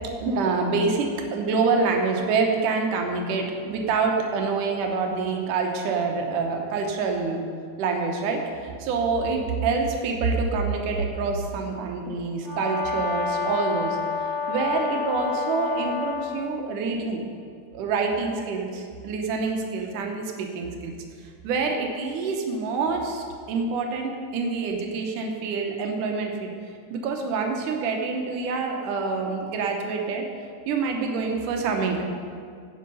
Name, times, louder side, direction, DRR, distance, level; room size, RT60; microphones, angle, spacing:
voice 1, 0.2-7.4 7.8-14.0 14.5-17.2 17.7-20.9 21.4-26.5 26.9-30.3 30.7-32.0, right 4 dB, 75° right, 2 dB, 1.9 m, -26 dB
Brass instrument, 12.4-16.3, left 5 dB, 45° left, 3.3 m, -28 dB
17.0 x 5.6 x 5.4 m, 2.2 s
omnidirectional pair, 5.0 m